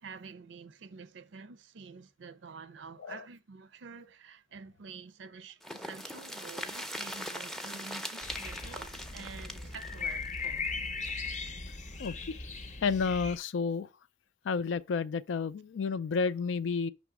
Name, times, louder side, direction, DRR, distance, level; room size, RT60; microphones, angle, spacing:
voice 1, 0.0-10.9, right 5 dB, 75° right, 0.5 m, -48 dB
sound 1, 5.6-11.3 11.7-11.8 12.0-12.1, equal, ahead, 0.5 m, -41 dB
sound 2, 8.2-13.4, left 4 dB, 40° left, 0.7 m, -38 dB
voice 2, 12.0-12.4 12.8-13.9 14.4-16.9, left 5 dB, 85° left, 0.4 m, -31 dB
6.0 x 3.0 x 5.7 m
head